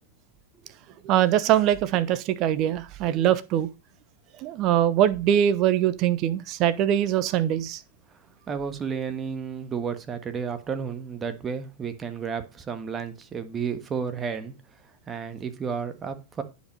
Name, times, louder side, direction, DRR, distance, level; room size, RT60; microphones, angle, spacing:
voice 1, 1.0-3.7 4.4-7.8, right 11 dB, 40° right, 0.9 m, -22 dB
voice 2, 8.5-14.5 15.1-16.4, right 6 dB, 25° right, 1.6 m, -32 dB
10.5 x 5.3 x 5.5 m
figure-of-eight pair, 95°, 0 cm